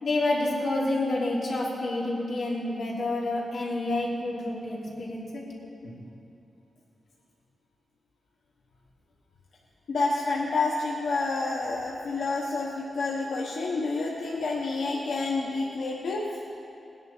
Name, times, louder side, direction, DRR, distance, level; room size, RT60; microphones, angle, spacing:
voice 1, 0.0-5.4 5.8-6.0, left 2 dB, 65° left, -6 dB, 3.3 m, -29 dB
voice 2, 9.9-16.2, left 3 dB, 90° left, -3 dB, 1.1 m, -29 dB
19.5 x 10.5 x 4.4 m, 2.8 s
wide cardioid pair, 160°, 0 cm